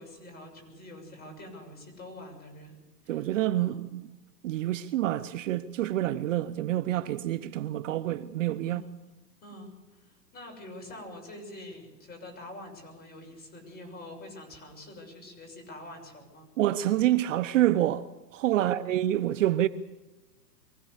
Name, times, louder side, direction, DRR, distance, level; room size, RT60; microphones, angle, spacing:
voice 1, 0.0-2.8 3.0-3.8 8.6-8.9 9.4-16.5 18.5-18.8, left 1 dB, 20° left, 6.7 m, -46 dB
voice 2, 3.1-4.1 4.4-8.8 16.6-19.7, right 13 dB, 50° right, 0.9 m, -27 dB
24.0 x 16.0 x 8.2 m
hypercardioid pair, 130°, 50 cm